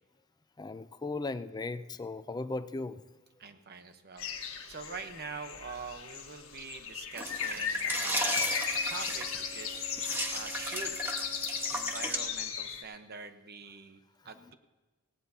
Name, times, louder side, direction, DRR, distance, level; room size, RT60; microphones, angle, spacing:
voice 1, 0.6-3.0 14.4-14.5, left 3 dB, 20° left, 12 dB, 0.4 m, -37 dB
voice 2, 3.4-4.3 4.7-8.4 8.9-9.9 10.3-11.0 11.7-14.0 14.2-14.5, right 5 dB, 45° right, 8 dB, 1.0 m, -44 dB
sound 1, 4.2-12.8, left 7 dB, 65° left, 1.5 m, -36 dB
sound 2, 7.1-12.2, right 1 dB, 10° right, 1.4 m, -35 dB
Bowed string instrument, 8.2-12.6, right 8 dB, 80° right, 1.4 m, -52 dB
18.5 x 16.5 x 2.8 m, 1.2 s
head